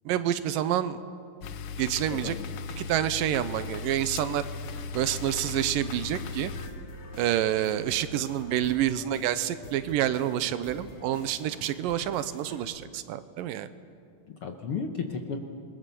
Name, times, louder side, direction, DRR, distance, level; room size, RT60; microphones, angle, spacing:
voice 1, 0.1-1.0 1.8-2.4 2.8-4.5 4.9-6.5 7.2-13.7, right 11 dB, 85° right, 13 dB, 2.5 m, -28 dB
sound 1, 1.4-6.7, left 5 dB, 85° left, 1.3 m, -37 dB
voice 2, 2.1-2.6 14.3-15.4, left 5 dB, 60° left, 4 dB, 1.5 m, -34 dB
sound 2, 4.6-12.6, left 1 dB, 45° left, 2.8 m, -45 dB
28.0 x 22.0 x 6.9 m, 2.5 s
omnidirectional pair, 3.9 m